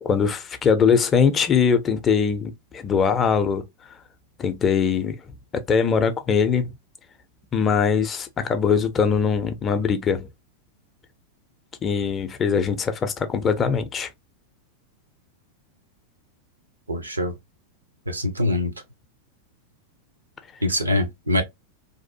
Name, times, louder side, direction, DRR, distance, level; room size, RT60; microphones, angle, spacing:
voice 1, 0.0-3.7 4.4-5.2 5.5-6.7 7.5-10.3 11.8-14.1, left 6 dB, 25° left, 0.4 m, -21 dB
voice 2, 16.9-17.3 18.1-18.7 20.6-21.4, left 1 dB, 80° right, 0.5 m, -23 dB
2.6 x 2.0 x 2.7 m
figure-of-eight pair, 90°, 0 cm